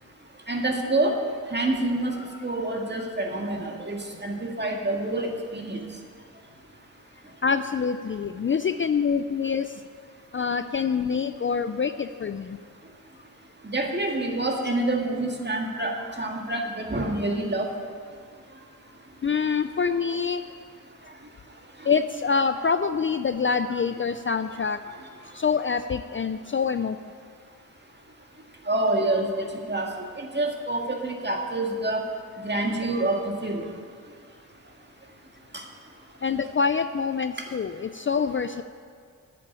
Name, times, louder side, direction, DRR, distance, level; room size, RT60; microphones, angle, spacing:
voice 1, 0.5-1.2 1.5-5.8 13.6-17.7 28.7-32.0 32.4-33.6 35.5-35.6, right 2 dB, 30° right, 1 dB, 1.9 m, -27 dB
voice 2, 7.4-9.8 10.3-12.6 19.2-20.4 21.8-24.8 25.2-27.0 36.2-38.6, left 5 dB, 35° left, 10 dB, 0.4 m, -26 dB
10.5 x 7.6 x 8.5 m, 2.1 s
wide cardioid pair, 80°, 35 cm